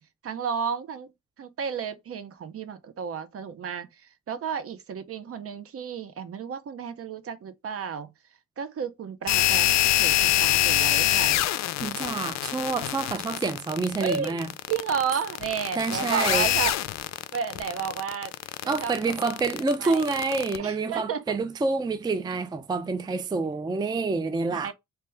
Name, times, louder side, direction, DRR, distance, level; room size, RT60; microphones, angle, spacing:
voice 1, 0.2-1.1 1.4-3.9 4.3-8.1 8.6-11.4 14.0-16.7 17.3-18.3 18.6-19.1 19.6-20.0 20.6-21.4 22.2-22.3 23.1-23.2 24.5-24.7, right 7 dB, 50° right, 0.7 m, -32 dB
sound 1, 9.3-20.6, left 14 dB, 65° left, 0.4 m, -25 dB
voice 2, 11.8-14.5 15.8-16.5 18.7-24.7, right 3 dB, 15° right, 0.4 m, -27 dB
3.2 x 2.8 x 3.4 m
cardioid pair, 90°, 30 cm